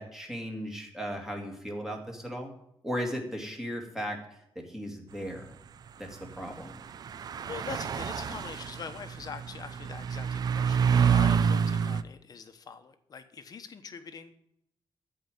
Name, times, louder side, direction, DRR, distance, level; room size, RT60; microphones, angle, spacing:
voice 1, 0.0-2.5 2.8-5.6 6.0-6.8, equal, 5° right, 2 dB, 2.1 m, -37 dB
sound 1, 6.3-6.4 6.9-12.0, right 7 dB, 45° right, 0.4 m, -27 dB
voice 2, 7.4-14.3, left 6 dB, 45° left, 9 dB, 1.1 m, -43 dB
13.5 x 4.9 x 9.0 m, 0.77 s
wide cardioid pair, 170°, 9 cm